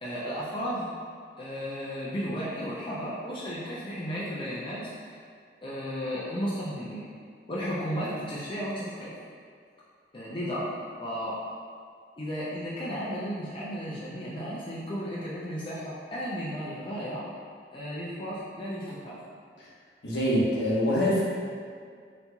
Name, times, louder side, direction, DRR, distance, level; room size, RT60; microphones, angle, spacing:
voice 1, 0.0-0.9 1.4-5.1 5.6-7.0 7.5-9.1 10.1-10.7 11.0-11.4 12.2-17.3 17.7-19.2, equal, 30° left, -8 dB, 0.5 m, -34 dB
voice 2, 20.0-21.2, equal, 70° left, -7 dB, 0.9 m, -24 dB
4.2 x 2.8 x 2.3 m, 2.1 s
head